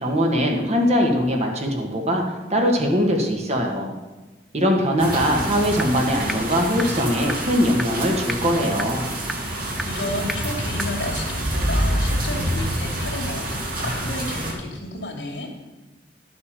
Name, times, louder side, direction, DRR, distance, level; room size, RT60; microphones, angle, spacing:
voice 1, 0.0-2.2 2.5-3.9 4.5-9.0, equal, 40° right, 2 dB, 1.7 m, -21 dB
sound 1, 5.0-14.5, right 1 dB, 55° right, 3.0 m, -27 dB
sound 2, 5.8-5.9 6.3-6.4 6.8-6.9 7.3-7.4 7.8-7.9 8.3-8.4 8.8-8.9 9.3-9.4 9.8-9.9 10.3-10.4 10.8-10.9, equal, ahead, 0.4 m, -27 dB
voice 2, 9.5-15.5, left 1 dB, 85° left, 1 dB, 2.7 m, -32 dB
11.5 x 7.0 x 6.7 m, 1.2 s
head